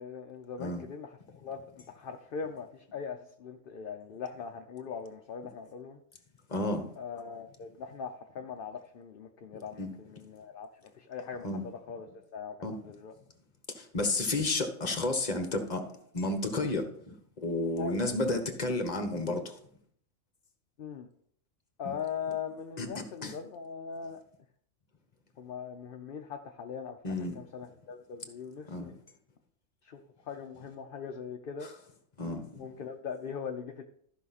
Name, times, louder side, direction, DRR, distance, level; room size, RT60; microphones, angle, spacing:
voice 1, 0.0-1.6 1.9-6.0 7.0-10.7 11.0-13.1 17.8-18.0 20.8-21.1 21.8-24.2 25.4-28.9 29.8-30.0 30.3-31.7 32.6-33.8, left 6 dB, 50° left, 0.8 m, -41 dB
voice 2, 6.5-6.9 9.8-9.9 11.4-11.6 12.6-12.7 13.7-15.9 16.1-19.6 21.8-21.9 22.8-22.9 23.2-23.3 27.0-27.3 28.7-28.9 32.2-32.6, left 2 dB, 35° left, 1.3 m, -31 dB
13.5 x 5.8 x 4.2 m
omnidirectional pair, 1.4 m